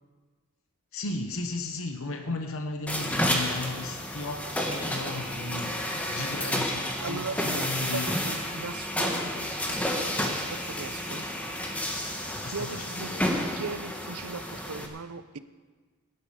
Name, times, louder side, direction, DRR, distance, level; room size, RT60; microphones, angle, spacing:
voice 1, 0.9-5.8 6.1-8.1 11.1-11.2 12.3-13.2, left 2 dB, 65° left, 4 dB, 1.0 m, -35 dB
sound 1, 2.9-14.9, left 1 dB, 5° left, 1.4 m, -31 dB
voice 2, 5.9-6.4 7.0-11.3 12.5-13.1 13.5-15.4, right 4 dB, 75° right, 13 dB, 0.7 m, -39 dB
17.5 x 11.0 x 4.9 m, 1.4 s
head